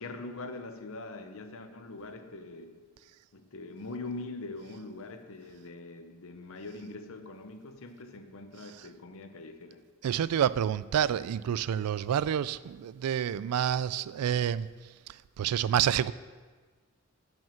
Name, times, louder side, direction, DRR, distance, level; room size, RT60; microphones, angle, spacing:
voice 1, 0.0-2.8 3.3-9.8, left 2 dB, 65° left, 0.8 m, -43 dB
voice 2, 10.0-14.7 15.4-16.1, right 9 dB, 85° right, 0.3 m, -28 dB
9.1 x 5.4 x 7.1 m
head